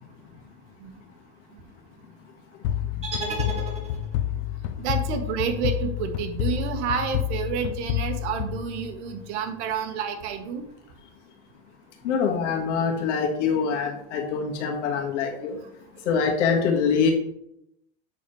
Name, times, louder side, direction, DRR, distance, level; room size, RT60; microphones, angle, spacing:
sound 1, 2.6-9.3, left 12 dB, 65° left, 0.7 m, -29 dB
sound 2, 3.0-4.3, right 2 dB, 20° right, 2.3 m, -33 dB
voice 1, 4.8-10.6, right 6 dB, 70° right, 6 dB, 1.5 m, -29 dB
voice 2, 12.0-15.6 16.1-17.1, left 6 dB, 85° left, 1 dB, 1.8 m, -24 dB
8.4 x 6.7 x 3.2 m, 0.79 s
supercardioid pair, 145°, 35 cm